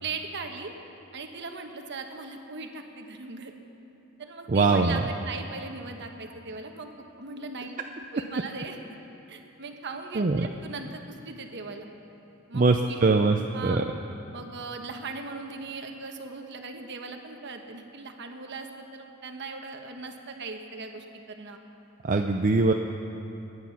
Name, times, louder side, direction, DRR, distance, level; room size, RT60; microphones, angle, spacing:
voice 1, 0.0-0.7 1.1-3.6 4.2-6.9 7.2-7.7 8.1-8.8 9.3-11.9 12.5-13.0 13.5-13.8 14.3-21.6, right 4 dB, 55° right, 4 dB, 1.2 m, -39 dB
voice 2, 4.5-5.0 10.2-10.5 12.5-13.8 22.0-22.7, right 3 dB, 40° right, 4 dB, 0.5 m, -22 dB
21.5 x 9.7 x 5.8 m, 3.0 s
head